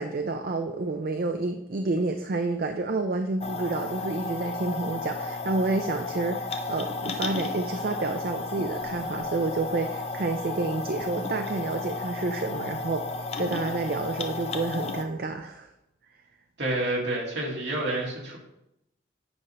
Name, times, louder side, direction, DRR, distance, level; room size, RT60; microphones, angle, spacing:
voice 1, 0.0-15.7, right 3 dB, 50° right, 6 dB, 0.4 m, -29 dB
sound 1, 3.4-15.0, left 3 dB, 35° left, 0.5 m, -33 dB
voice 2, 16.6-18.4, right 1 dB, 70° right, -3 dB, 2.1 m, -29 dB
8.6 x 3.3 x 5.5 m, 0.85 s
head